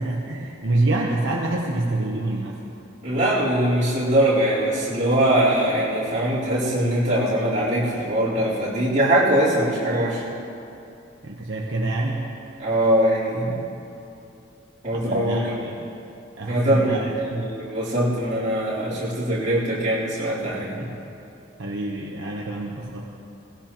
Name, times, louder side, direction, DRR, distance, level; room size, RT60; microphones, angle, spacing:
voice 1, 0.0-2.6 11.2-12.3 14.9-15.9 16.4-17.5 20.8-20.9 21.6-23.1, right 2 dB, 70° right, -2 dB, 1.0 m, -26 dB
voice 2, 3.0-10.2 12.6-13.6 14.8-15.5 16.5-20.9, right 1 dB, 40° right, -10 dB, 4.0 m, -22 dB
18.5 x 17.0 x 3.0 m, 2.8 s
head